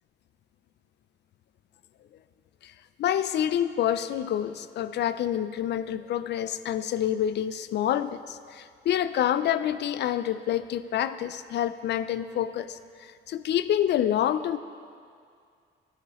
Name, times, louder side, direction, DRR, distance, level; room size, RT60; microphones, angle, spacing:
voice 1, 3.0-14.6, left 10 dB, 60° left, 14 dB, 0.4 m, -27 dB
12.0 x 10.0 x 3.0 m, 2.3 s
cardioid pair, 90°, 20 cm